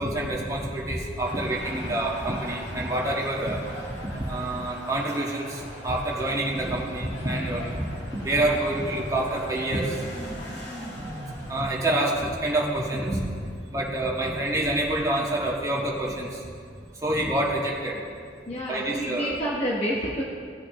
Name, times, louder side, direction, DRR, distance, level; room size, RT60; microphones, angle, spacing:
voice 1, 0.0-3.6 4.0-7.9 8.2-10.0 11.0-11.1 11.5-13.3 13.7-16.4 17.0-18.0 18.7-19.4, right 1 dB, 20° right, -4 dB, 1.6 m, -27 dB
sound 1, 1.2-11.6, equal, 80° left, 2.2 m, -42 dB
Motorcycle / Accelerating revving vroom, 4.5-13.3, equal, 65° left, 2.4 m, -42 dB
voice 2, 18.5-20.2, equal, 35° left, -4 dB, 1.1 m, -28 dB
17.0 x 8.5 x 3.0 m, 2.2 s
head